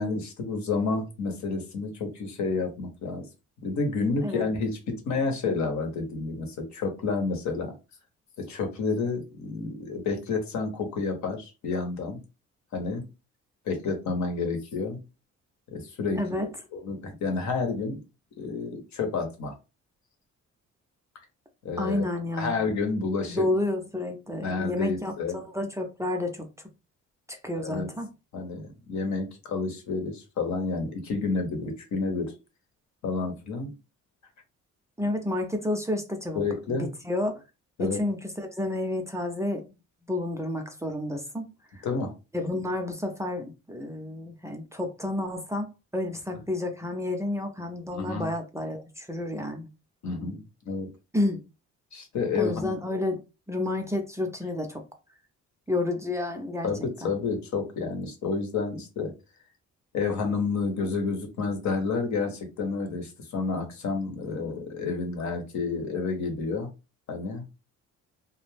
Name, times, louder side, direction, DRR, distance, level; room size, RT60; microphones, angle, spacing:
voice 1, 0.0-3.3 3.6-7.7 8.4-12.2 12.7-13.0 13.7-15.0 15.7-18.0 18.4-19.5 21.6-22.1 22.4-23.4 24.4-25.4 27.6-27.9 28.3-32.3 33.0-33.7 36.3-36.9 37.8-38.0 41.8-42.1 46.3-46.4 47.9-48.3 50.0-50.9 51.9-52.7 56.6-59.1 59.9-66.7 67.1-67.4, left 4 dB, 70° left, 0.9 m, -30 dB
voice 2, 16.2-16.5 21.8-22.5 23.3-26.5 27.3-28.1 35.0-36.4 36.7-37.3 37.8-39.8 40.1-41.9 42.3-49.7 51.1-51.4 52.4-53.2 53.5-54.8 55.7-56.7 57.0-57.1, left 1 dB, 10° right, 0.5 m, -30 dB
2.2 x 2.0 x 3.2 m
cardioid pair, 90°, 30 cm